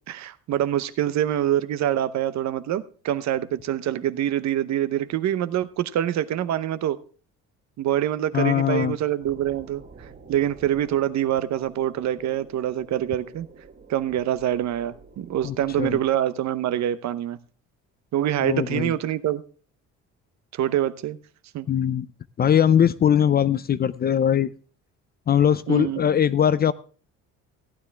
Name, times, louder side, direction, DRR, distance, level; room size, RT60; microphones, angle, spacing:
voice 1, 0.1-7.0 7.8-13.5 13.9-17.4 18.1-19.4 20.5-21.2 21.5-21.7 25.7-26.0, right 11 dB, 60° right, 14 dB, 0.8 m, -25 dB
voice 2, 8.3-9.0 15.4-16.0 18.4-18.9 21.7-22.1 22.4-24.5 25.3-26.7, left 9 dB, 30° left, 17 dB, 0.4 m, -21 dB
sound 1, 9.2-16.1, right 4 dB, 35° right, 2.4 m, -48 dB
15.0 x 9.7 x 3.4 m, 0.39 s
cardioid pair, 120°, 32 cm